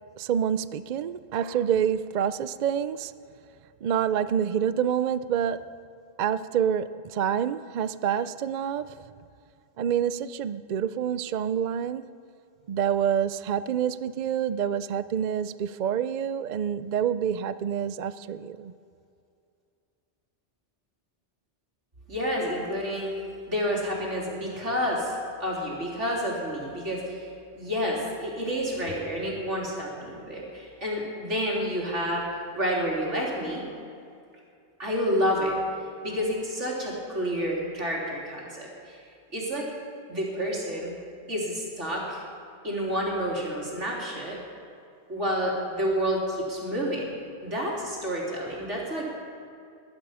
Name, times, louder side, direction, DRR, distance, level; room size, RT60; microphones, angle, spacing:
voice 1, 0.2-3.1 3.8-5.7 6.2-8.9 9.8-12.1 12.7-18.7, right 8 dB, 55° right, 0.5 m, -27 dB
voice 2, 22.1-23.1 23.5-27.3 27.6-32.3 32.5-33.6 34.8-35.6 36.0-39.0 39.3-39.7 40.1-40.9 41.3-42.2 42.6-44.4 45.1-47.1 47.4-49.1, equal, 85° right, 3.7 m, -29 dB
20.5 x 12.0 x 5.6 m
omnidirectional pair, 1.2 m